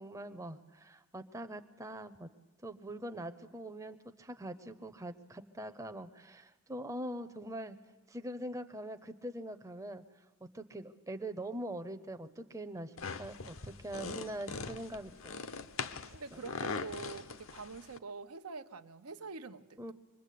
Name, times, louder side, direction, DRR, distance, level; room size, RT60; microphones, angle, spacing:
voice 1, 0.0-2.3 2.6-7.8 8.1-15.4 16.3-16.4 19.8-19.9, right 1 dB, 15° right, 7 dB, 0.7 m, -43 dB
sound 1, 13.0-18.0, left 4 dB, 60° left, 0.8 m, -41 dB
voice 2, 16.1-19.9, right 4 dB, 85° right, 9 dB, 0.9 m, -45 dB
24.0 x 21.0 x 8.5 m, 1.1 s
head